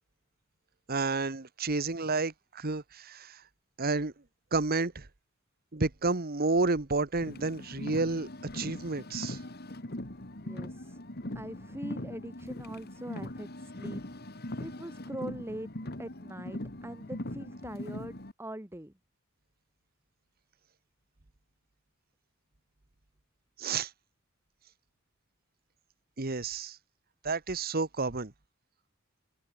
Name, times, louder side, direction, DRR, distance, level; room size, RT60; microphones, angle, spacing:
voice 1, 0.9-3.4 3.8-4.1 4.5-5.1 5.7-9.4 23.6-23.9 26.2-26.8 27.2-28.3, right 3 dB, 45° right, 1.3 m, -30 dB
Car, 7.2-18.3, left 1 dB, 50° left, 2.6 m, -41 dB
voice 2, 10.4-11.0 11.3-14.0 14.6-15.7 16.0-18.9, right 1 dB, 10° right, 1.4 m, -42 dB
head